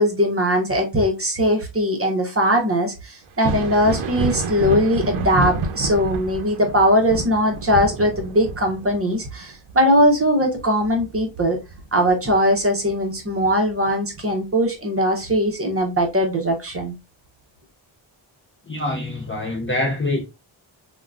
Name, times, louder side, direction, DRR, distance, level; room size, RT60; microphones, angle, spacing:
voice 1, 0.0-11.6 11.9-16.9, equal, 30° right, 0.7 m, -20 dB
Thunder, 3.3-12.6 13.0-14.2 15.8-15.9 16.7-16.8, right 3 dB, 80° right, 0.6 m, -29 dB
voice 2, 18.7-20.2, left 2 dB, 25° left, 0.4 m, -25 dB
3.6 x 2.2 x 2.3 m
wide cardioid pair, 155°, 49 cm